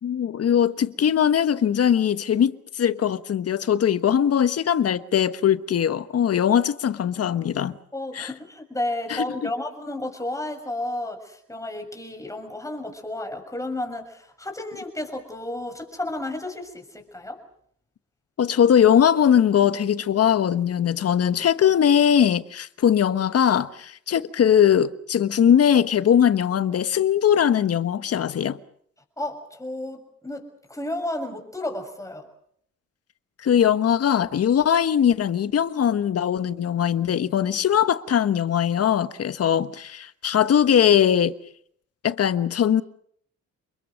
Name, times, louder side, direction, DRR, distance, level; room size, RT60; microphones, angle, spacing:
voice 1, 0.0-7.8 8.1-8.3 9.1-9.2 18.4-28.6 33.4-41.3 42.0-42.8, left 9 dB, 50° left, 1.3 m, -20 dB
voice 2, 7.9-17.4 29.2-30.4 30.7-32.3, left 1 dB, 10° left, 6.6 m, -32 dB
29.0 x 21.5 x 6.5 m
cardioid pair, 90°, 30 cm